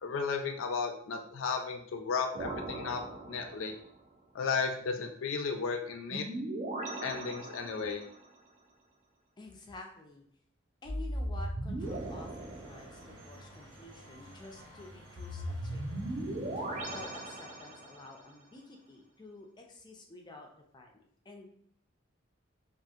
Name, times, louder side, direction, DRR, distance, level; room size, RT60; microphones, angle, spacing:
voice 1, 0.0-3.0 3.3-3.7 4.3-6.2 7.0-8.0, left 5 dB, 85° left, 5 dB, 0.5 m, -34 dB
sound 1, 2.3-3.9 6.1-8.2 10.9-13.4 15.2-18.1, right 1 dB, 40° right, 0.4 m, -38 dB
voice 2, 9.4-10.3 10.8-16.3 16.9-20.5 20.7-21.5, left 2 dB, 20° left, 1 dB, 0.4 m, -50 dB
sound 2, 11.8-17.1, equal, 65° right, 0.8 m, -53 dB
2.7 x 2.5 x 2.4 m, 0.63 s
head